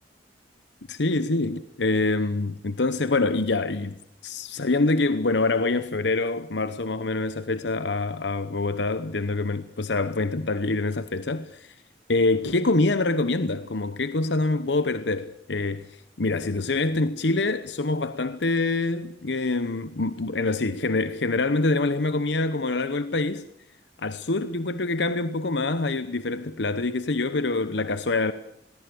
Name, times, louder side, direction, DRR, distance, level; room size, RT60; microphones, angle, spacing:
voice 1, 0.9-4.0 4.2-11.7 12.1-23.4 24.0-28.3, left 3 dB, 75° left, 1.0 m, -25 dB
22.0 x 19.0 x 8.6 m
head